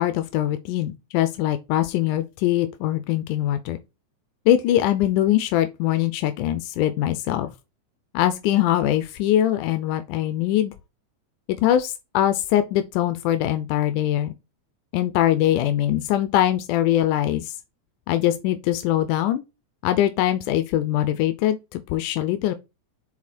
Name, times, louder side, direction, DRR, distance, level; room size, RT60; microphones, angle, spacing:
voice 1, 0.0-3.8 4.5-7.5 8.1-10.7 11.5-14.3 14.9-17.5 18.1-19.4 19.8-22.5, left 12 dB, 85° left, 2.3 m, -22 dB
7.3 x 4.2 x 4.3 m
omnidirectional pair, 3.6 m